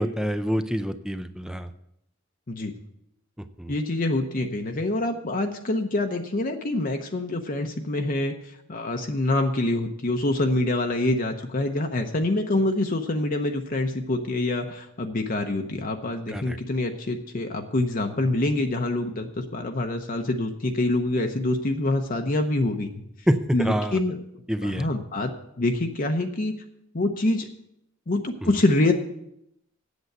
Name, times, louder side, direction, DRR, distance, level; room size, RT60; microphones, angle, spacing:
voice 1, 0.0-1.7 3.6-3.7 16.3-16.6 23.3-24.0 24.5-24.9 28.4-28.5, equal, 5° right, 10 dB, 0.4 m, -26 dB
voice 2, 3.7-8.3 8.7-22.9 23.5-24.2 24.6-26.5 26.9-27.5 28.1-28.9, left 2 dB, 45° left, 4 dB, 0.8 m, -26 dB
8.1 x 7.8 x 7.9 m, 0.78 s
head